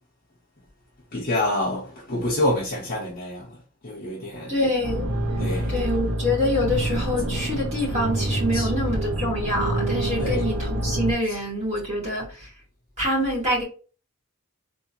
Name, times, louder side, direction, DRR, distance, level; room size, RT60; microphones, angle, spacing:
voice 1, 1.1-4.5 5.4-5.8 8.5-8.7 10.2-10.5 11.3-11.4, left 1 dB, 40° left, 0.7 m, -27 dB
voice 2, 4.5-5.1 5.7-12.5 13.0-13.6, left 1 dB, 30° right, 1.9 m, -26 dB
sound 1, 4.8-11.1, right 1 dB, 75° right, 0.8 m, -26 dB
3.6 x 2.7 x 2.8 m
head